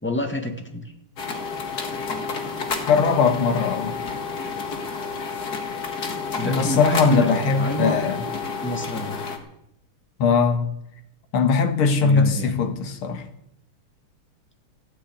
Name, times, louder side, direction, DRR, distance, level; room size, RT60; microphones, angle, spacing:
voice 1, 0.0-0.9 6.4-8.0 8.6-9.2 12.0-12.5, equal, 5° left, 1.6 m, -27 dB
sound 1, 1.2-9.4, left 4 dB, 50° left, 2.2 m, -30 dB
voice 2, 2.9-4.0 6.4-8.2 10.2-10.7 11.3-13.2, left 5 dB, 90° left, 2.3 m, -20 dB
16.0 x 8.6 x 9.2 m
omnidirectional pair, 2.3 m